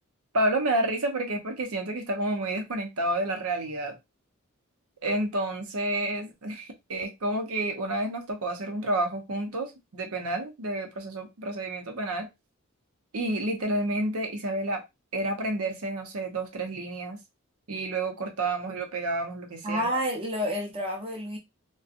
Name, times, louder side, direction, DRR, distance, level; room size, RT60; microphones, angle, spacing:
voice 1, 0.3-3.9 5.0-12.3 13.1-14.8 15.1-17.2 17.7-19.9, right 1 dB, 80° right, 0.7 m, -30 dB
voice 2, 19.6-21.4, equal, 25° right, 0.7 m, -29 dB
2.6 x 2.2 x 2.5 m
head